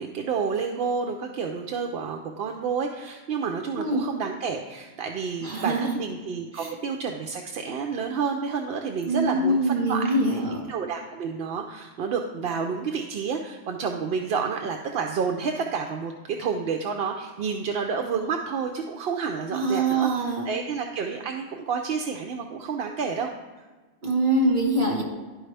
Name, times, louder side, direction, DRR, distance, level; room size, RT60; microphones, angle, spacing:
voice 1, 0.0-10.4 10.7-23.7, right 5 dB, 65° right, 3 dB, 0.7 m, -30 dB
voice 2, 3.8-4.1 5.4-5.9 6.6-6.7 9.1-10.7 19.5-20.5 24.0-25.0, right 2 dB, 45° right, -1 dB, 1.7 m, -24 dB
11.5 x 4.7 x 3.3 m, 1.3 s
omnidirectional pair, 1.2 m